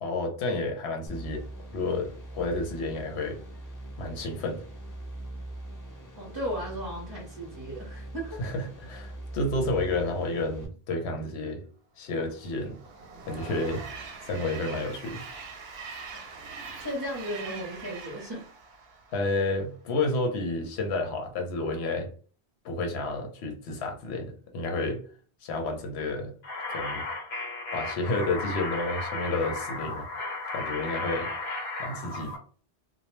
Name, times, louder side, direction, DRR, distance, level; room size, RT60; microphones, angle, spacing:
voice 1, 0.0-1.4 1.7-3.4 4.0-4.6 8.4-11.6 12.0-12.8 13.3-13.8 14.2-15.2 19.1-22.1 22.6-25.0 25.4-26.3 26.7-27.0 27.7-30.1 30.5-31.3 31.8-32.4, left 2 dB, 85° left, 4 dB, 0.9 m, -30 dB
sound 1, 1.1-10.7, right 1 dB, 25° left, 0.5 m, -42 dB
voice 2, 6.2-8.4 16.8-18.5, equal, 25° right, -3 dB, 0.7 m, -35 dB
Train, 12.2-19.6, right 4 dB, 70° right, 0.8 m, -43 dB
sound 2, 26.4-32.4, left 2 dB, 60° left, 0.9 m, -34 dB
2.2 x 2.0 x 3.0 m, 0.41 s
omnidirectional pair, 1.1 m